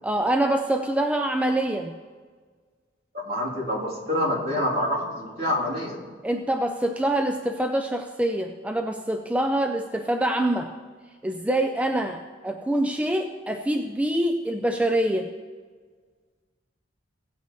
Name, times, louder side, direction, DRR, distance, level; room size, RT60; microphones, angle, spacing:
voice 1, 0.0-1.9 6.2-10.7 11.2-15.3, right 1 dB, 5° right, 5 dB, 0.4 m, -25 dB
voice 2, 3.1-6.0, left 1 dB, 55° right, -6 dB, 3.1 m, -27 dB
16.5 x 8.3 x 3.1 m, 1.5 s
head